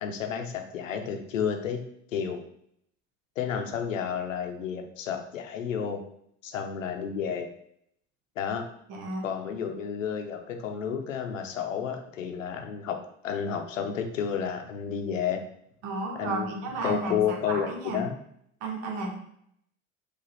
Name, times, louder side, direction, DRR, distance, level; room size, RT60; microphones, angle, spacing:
voice 1, 0.0-1.8 2.1-2.4 3.4-6.0 6.4-7.5 8.4-8.6 9.2-13.0 13.2-15.4 16.2-16.5 16.8-18.2, left 7 dB, 80° left, 5 dB, 0.7 m, -31 dB
voice 2, 8.9-9.2 15.8-18.0 18.6-19.1, right 3 dB, 60° right, 1 dB, 1.0 m, -33 dB
4.9 x 2.4 x 4.0 m, 0.70 s
figure-of-eight pair, 55°, 38 cm